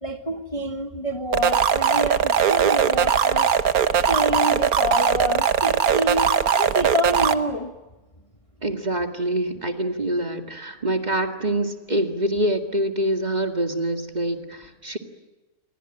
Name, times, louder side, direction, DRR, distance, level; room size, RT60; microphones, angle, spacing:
voice 1, 0.0-3.5 4.1-6.3 6.6-7.7, equal, 25° left, 5 dB, 1.4 m, -27 dB
sound 1, 1.3-7.3, right 7 dB, 75° right, 1.6 m, -20 dB
voice 2, 8.6-15.0, right 1 dB, 30° right, 5 dB, 2.2 m, -25 dB
29.0 x 23.0 x 9.1 m, 1.1 s
omnidirectional pair, 1.6 m